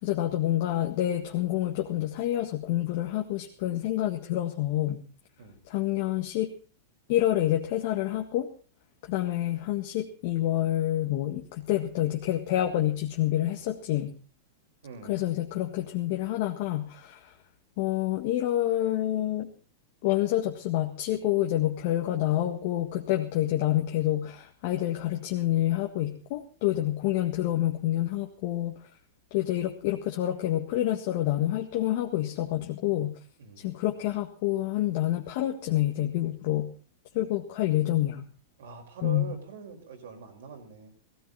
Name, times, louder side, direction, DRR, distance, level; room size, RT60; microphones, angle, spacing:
voice 1, 0.0-5.0 5.7-6.5 7.1-8.5 9.0-14.1 15.1-17.3 17.8-19.5 20.0-28.8 29.3-33.2 33.6-36.7 37.1-38.3 39.0-39.3, left 13 dB, 50° left, 2 dB, 1.8 m, -28 dB
voice 2, 14.8-15.3 33.4-33.7 38.6-40.9, right 6 dB, 75° right, 4 dB, 5.2 m, -43 dB
16.5 x 16.0 x 4.2 m, 0.37 s
supercardioid pair, 155°, 0 cm